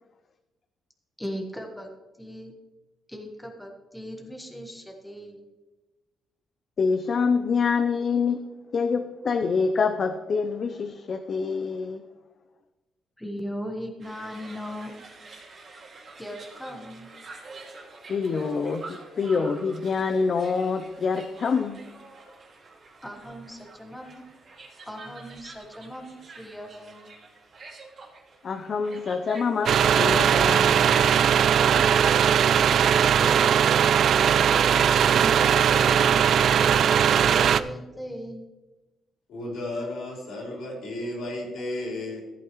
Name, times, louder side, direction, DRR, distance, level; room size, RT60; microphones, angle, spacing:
voice 1, 1.2-1.9 2.2-2.5 3.1-5.5 13.2-14.9 16.2-17.1 23.0-24.2 24.8-27.1 33.2-33.7 35.2-38.4, equal, 5° left, 1.3 m, -38 dB
voice 2, 6.8-8.4 8.7-12.1 18.1-21.8 28.4-30.9 31.6-31.8, left 5 dB, 45° left, 0.5 m, -26 dB
sound 1, 14.0-31.9, right 3 dB, 45° right, 2.3 m, -47 dB
sound 2, 29.7-37.6, right 8 dB, 65° right, 0.4 m, -19 dB
voice 3, 39.3-42.2, left 1 dB, 80° left, 3.9 m, -33 dB
14.0 x 8.7 x 3.1 m
cardioid pair, 110°, 0 cm